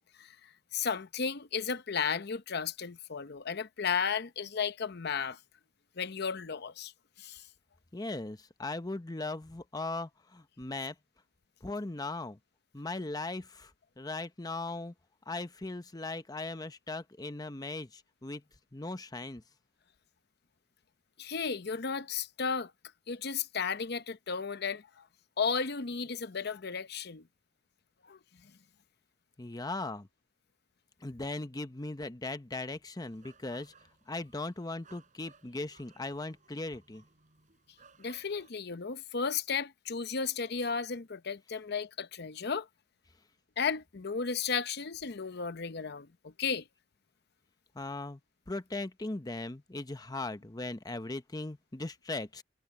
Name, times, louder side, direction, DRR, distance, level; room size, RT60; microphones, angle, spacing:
voice 1, 0.2-5.4 6.0-6.9 7.2-7.4 21.2-22.7 23.1-25.0 25.4-27.2 28.1-28.2 38.0-42.7 43.6-46.6, left 6 dB, 55° left, 0.8 m, -34 dB
voice 2, 7.9-10.9 11.6-12.4 12.7-14.9 15.3-18.4 18.7-19.4 29.4-30.1 31.0-33.7 34.1-37.0 47.7-48.2 48.5-52.4, left 2 dB, 20° left, 0.8 m, -38 dB
sound 1, 32.9-38.5, right 5 dB, 40° right, 4.9 m, -62 dB
head